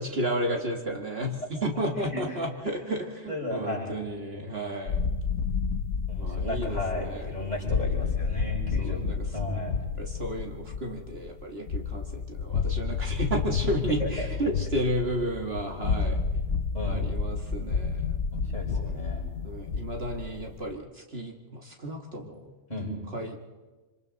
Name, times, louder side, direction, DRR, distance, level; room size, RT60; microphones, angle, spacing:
voice 1, 0.0-5.0 6.2-7.4 8.8-9.4 10.0-16.2 16.8-18.2 18.7-19.0 19.4-22.5 23.1-23.4, right 1 dB, 55° right, 2 dB, 2.0 m, -32 dB
voice 2, 3.3-4.0 4.3-4.5 6.1-9.1 9.3-9.8 14.0-14.3 16.7-17.1 18.3-19.3 22.7-22.9, left 1 dB, 35° left, -3 dB, 5.9 m, -34 dB
sound 1, 4.9-20.8, left 5 dB, 85° left, 1.4 m, -30 dB
26.0 x 26.0 x 4.0 m, 1.3 s
omnidirectional pair, 1.3 m